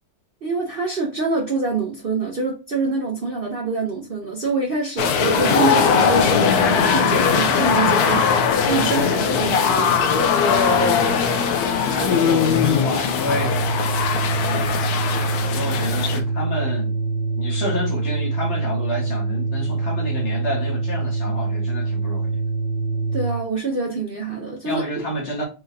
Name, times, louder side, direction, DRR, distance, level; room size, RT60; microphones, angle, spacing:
voice 1, 0.4-10.3 23.1-24.8, right 3 dB, 75° right, 0.5 m, -25 dB
sound 1, 5.0-16.2, left 6 dB, 70° left, 1.0 m, -19 dB
voice 2, 11.8-13.9 14.5-14.8 15.5-16.9 17.4-22.4 24.6-25.4, left 1 dB, 40° left, 1.7 m, -29 dB
Organ, 13.1-23.4, right 3 dB, 60° right, 2.0 m, -25 dB
4.5 x 3.8 x 2.7 m
omnidirectional pair, 2.0 m